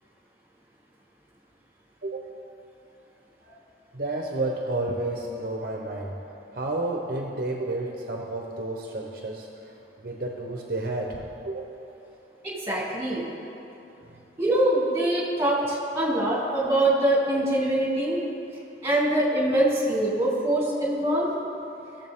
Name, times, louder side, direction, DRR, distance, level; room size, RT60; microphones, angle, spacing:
voice 1, 2.0-2.3 3.9-6.1 6.5-11.7 14.0-14.2, right 2 dB, 55° right, 0 dB, 0.9 m, -31 dB
voice 2, 12.4-13.2 14.4-18.2 18.8-21.3, right 1 dB, 15° right, -5 dB, 2.4 m, -24 dB
18.5 x 7.3 x 3.6 m, 2.9 s
head